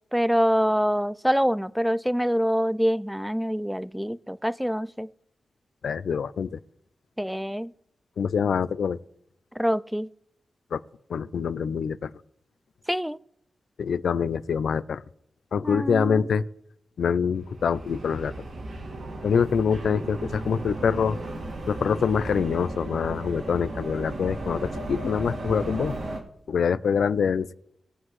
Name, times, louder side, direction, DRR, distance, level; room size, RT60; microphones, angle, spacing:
voice 1, 0.1-5.1 7.2-7.7 9.6-10.1 12.9-13.2 15.6-16.2, equal, ahead, 18 dB, 0.3 m, -25 dB
voice 2, 5.8-6.6 8.2-9.0 10.7-10.8 11.1-12.1 13.8-15.0 15.5-16.4 17.0-18.3 19.2-21.2 21.7-25.9 26.5-27.5, left 6 dB, 85° left, 16 dB, 0.4 m, -25 dB
sound 1, 17.3-26.2, right 2 dB, 80° right, 2.0 m, -35 dB
20.0 x 7.7 x 3.2 m, 0.76 s
wide cardioid pair, 90°, 0 cm